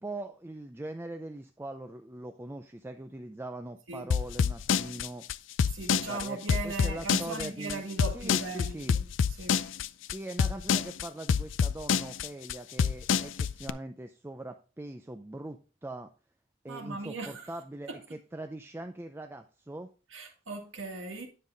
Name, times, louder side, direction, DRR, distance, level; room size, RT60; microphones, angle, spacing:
voice 1, 0.0-5.2 5.9-7.8 8.1-9.0 10.0-16.1 16.6-19.9, right 1 dB, 10° right, 0.4 m, -41 dB
sound 1, 4.1-13.7, left 6 dB, 70° left, 0.4 m, -27 dB
voice 2, 5.7-9.1 9.4-9.6 16.7-17.5 17.9-18.0 20.1-21.3, right 3 dB, 80° right, 1.9 m, -38 dB
9.6 x 5.5 x 3.9 m
head